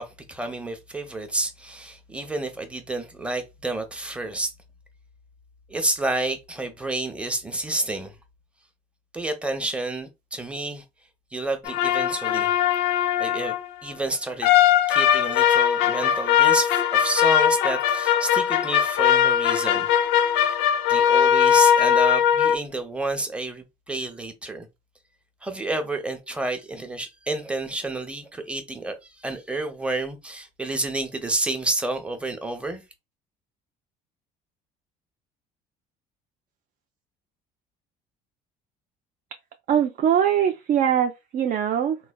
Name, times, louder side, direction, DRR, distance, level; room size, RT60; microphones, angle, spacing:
voice 1, 0.0-4.5 5.7-8.1 9.1-10.8 11.3-12.6 13.2-13.5 13.8-14.5 14.9-19.9 20.9-24.7 25.4-32.8, right 2 dB, 5° right, 0.7 m, -30 dB
sound 1, 11.7-13.7 14.4-22.6, left 10 dB, 85° left, 0.4 m, -20 dB
voice 2, 39.7-42.0, right 9 dB, 50° right, 0.4 m, -22 dB
3.1 x 2.2 x 2.2 m
supercardioid pair, 75°, 18 cm